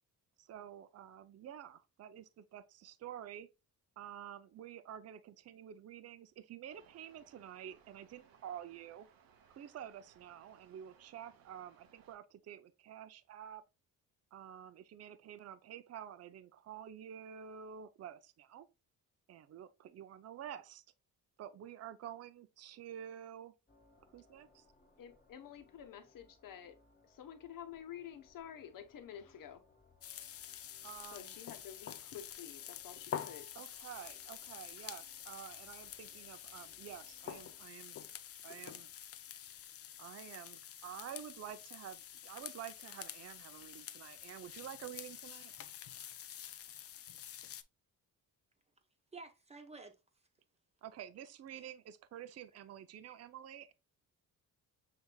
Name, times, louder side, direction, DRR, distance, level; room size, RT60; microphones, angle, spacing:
voice 1, 0.4-3.5 4.0-9.1 9.5-13.6 14.3-18.7 19.3-20.8 21.4-23.5 24.1-24.7 30.8-31.4 33.5-38.0 38.4-38.9 40.0-45.5 50.8-53.7, right 10 dB, 45° right, 0.5 m, -49 dB
sound 1, 6.7-12.2, right 7 dB, 75° right, 0.8 m, -66 dB
sound 2, 23.7-37.7, left 3 dB, 25° left, 1.3 m, -69 dB
voice 2, 25.0-26.8 27.0-29.6 31.1-33.5, left 9 dB, 65° left, 1.0 m, -50 dB
sound 3, 30.0-47.6, left 10 dB, 45° left, 0.4 m, -48 dB
voice 3, 49.1-49.9 53.1-53.2, right 3 dB, 20° right, 0.9 m, -51 dB
6.4 x 3.4 x 2.2 m
cardioid pair, 105°, 35 cm